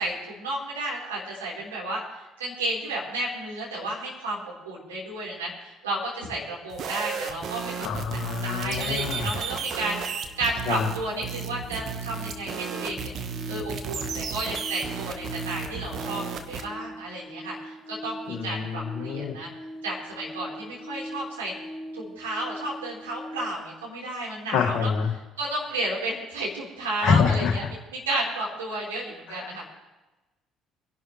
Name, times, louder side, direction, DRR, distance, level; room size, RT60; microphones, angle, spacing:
voice 1, 0.0-2.0 2.4-7.7 8.1-13.1 13.5-19.5 19.8-21.5 21.9-24.9 25.4-27.6 27.9-29.6, right 2 dB, 80° right, -4 dB, 4.2 m, -32 dB
sound 1, 6.7-16.6, right 6 dB, 50° right, 1.4 m, -34 dB
voice 2, 7.8-9.3 10.7-10.9 18.3-19.3 24.5-25.1 27.0-27.7 29.3-29.6, left 6 dB, 55° left, 2 dB, 2.0 m, -26 dB
sound 2, 10.3-23.5, equal, 35° left, 1.8 m, -41 dB
25.0 x 11.0 x 3.3 m, 1.1 s
figure-of-eight pair, 50°, 0 cm